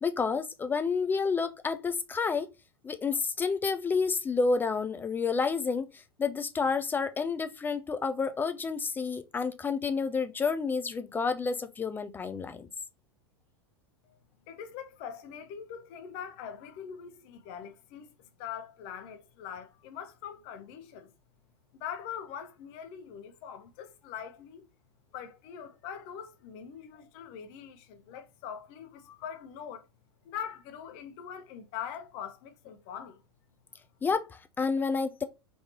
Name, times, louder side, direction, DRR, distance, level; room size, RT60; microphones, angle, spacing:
voice 1, 0.0-2.5 2.8-12.7 34.0-35.2, left 5 dB, 15° left, 0.3 m, -30 dB
voice 2, 14.5-21.1 21.7-24.7 25.1-29.9 30.2-33.2, left 8 dB, 45° left, 0.7 m, -42 dB
3.6 x 2.7 x 2.9 m
figure-of-eight pair, 90°, 14 cm